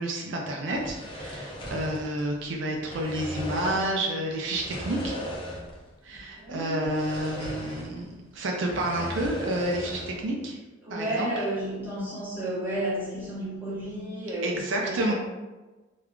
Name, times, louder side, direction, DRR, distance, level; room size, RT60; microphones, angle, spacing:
voice 1, 0.0-5.2 6.0-10.6 10.9-11.4 14.4-15.1, right 1 dB, 70° right, 0 dB, 0.4 m, -30 dB
sound 1, 0.7-2.5 2.8-4.0 4.5-5.9 6.1-6.3 6.8-8.1 8.4-10.2, equal, 25° left, 0.5 m, -37 dB
voice 2, 6.1-6.9 10.8-15.1, right 1 dB, 10° right, -9 dB, 0.9 m, -32 dB
3.5 x 2.3 x 2.2 m, 1.2 s
head